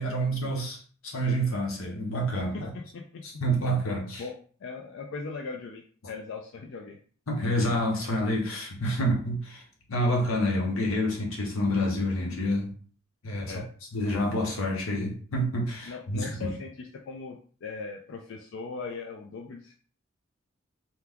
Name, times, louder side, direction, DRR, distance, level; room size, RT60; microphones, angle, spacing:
voice 1, 0.0-2.7 3.2-4.2 7.3-9.6 9.9-12.7 13.2-13.6 13.9-16.5, equal, 90° left, 0 dB, 0.9 m, -28 dB
voice 2, 2.5-3.2 4.2-4.3 4.6-7.0 13.5-13.7 15.9-19.7, left 4 dB, 65° left, 1 dB, 0.4 m, -39 dB
2.9 x 2.2 x 3.4 m, 0.43 s
head